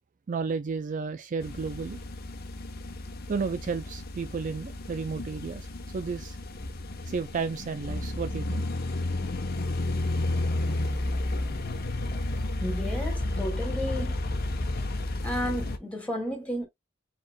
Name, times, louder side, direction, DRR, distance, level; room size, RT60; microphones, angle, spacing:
voice 1, 0.3-2.0 3.3-5.7 5.9-6.4 7.1-8.6, right 5 dB, 40° right, 0.4 m, -32 dB
sound 1, 1.4-15.8, left 2 dB, 50° left, 0.9 m, -32 dB
voice 2, 12.5-14.2 15.2-16.7, equal, 5° left, 2.2 m, -33 dB
4.7 x 4.3 x 2.2 m
head